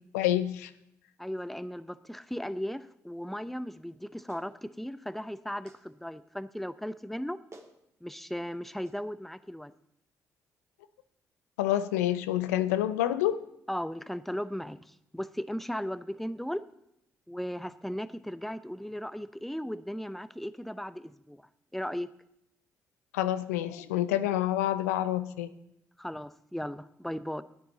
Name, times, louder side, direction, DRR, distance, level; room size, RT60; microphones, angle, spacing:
voice 1, 0.1-0.7 11.6-13.4 23.1-25.5, left 13 dB, 85° left, 12 dB, 0.4 m, -28 dB
voice 2, 1.2-7.4 8.0-9.7 13.7-16.6 17.3-22.1 26.0-27.4, equal, ahead, 15 dB, 0.6 m, -36 dB
Clapping, 4.3-4.5 5.6-5.8 7.1-7.2 7.5-7.8 8.8-9.0, right 2 dB, 35° right, 2.1 m, -52 dB
14.0 x 9.4 x 4.0 m, 0.78 s
hypercardioid pair, 40°, 8 cm